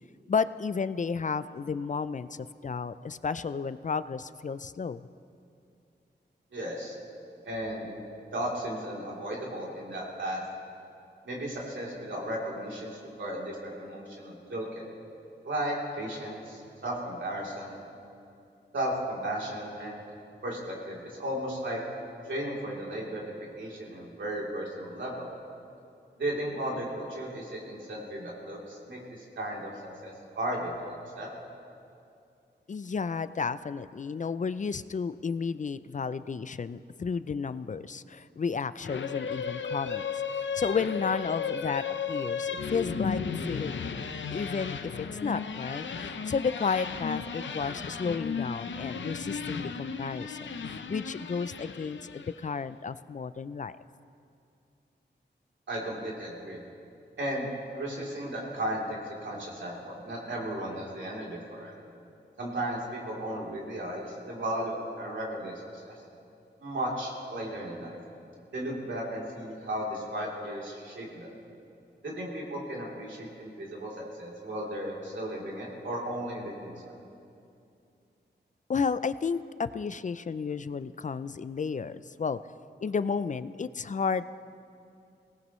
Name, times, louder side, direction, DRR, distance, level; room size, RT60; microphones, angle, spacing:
voice 1, 0.3-2.3 2.6-5.0 32.7-40.2 40.5-43.2 43.5-43.9 44.3-45.9 46.3-53.8 78.7-82.4 82.8-84.3, left 5 dB, 40° left, 14 dB, 0.4 m, -32 dB
voice 2, 6.5-6.9 7.4-7.9 8.3-10.4 11.2-14.9 15.4-17.7 18.7-20.0 20.4-21.8 22.3-23.2 23.6-25.3 26.2-29.7 30.0-31.3 55.7-56.6 57.2-57.5 57.7-61.8 62.4-65.9 66.6-68.0 68.5-71.3 72.0-76.9, right 1 dB, 90° right, -4 dB, 3.3 m, -35 dB
sound 1, 38.8-52.4, left 6 dB, 85° left, 0.7 m, -35 dB
24.0 x 18.0 x 3.1 m, 2.6 s
wide cardioid pair, 85°, 19 cm